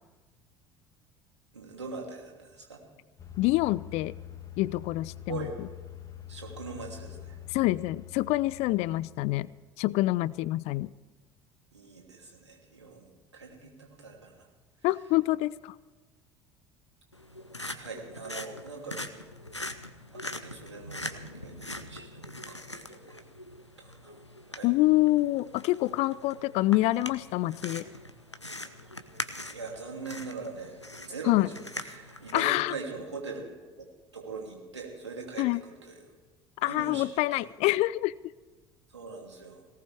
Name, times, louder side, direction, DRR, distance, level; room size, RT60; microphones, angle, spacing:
voice 1, 1.5-2.8 5.3-5.5 6.3-7.4 11.7-14.5 17.7-19.2 20.4-23.2 23.8-24.2 24.5-24.7 29.5-31.4 31.8-33.5 33.8-33.9 34.1-36.1 36.6-37.4 38.9-39.7, right 4 dB, 80° right, 0 dB, 3.1 m, -42 dB
sound 1, 3.2-9.7, left 11 dB, 25° left, 2.1 m, -45 dB
voice 2, 3.4-4.1 4.6-5.5 7.5-9.5 9.8-10.9 14.8-15.7 24.6-27.9 31.3-31.5 32.3-32.7 35.4-35.6 36.6-38.1, left 18 dB, 50° left, 21 dB, 0.5 m, -26 dB
sound 2, 17.1-32.7, left 1 dB, 90° left, 0.8 m, -42 dB
20.5 x 18.5 x 3.5 m, 1.3 s
figure-of-eight pair, 60°, 14 cm